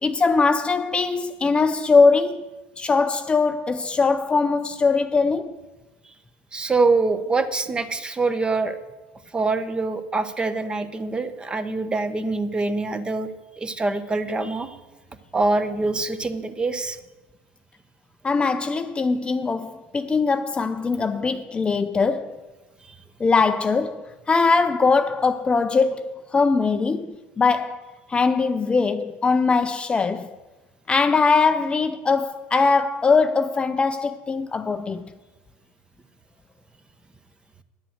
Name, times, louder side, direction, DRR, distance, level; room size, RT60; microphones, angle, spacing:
voice 1, 0.0-2.4 2.8-5.6 18.2-22.4 23.2-30.3 30.9-35.1, left 4 dB, 20° left, 0.5 m, -21 dB
voice 2, 6.5-8.8 9.3-13.3 13.6-14.7 15.3-17.0 21.3-21.4 22.9-23.0, right 3 dB, 15° right, 0.9 m, -24 dB
10.0 x 7.6 x 7.8 m
supercardioid pair, 110°, 5 cm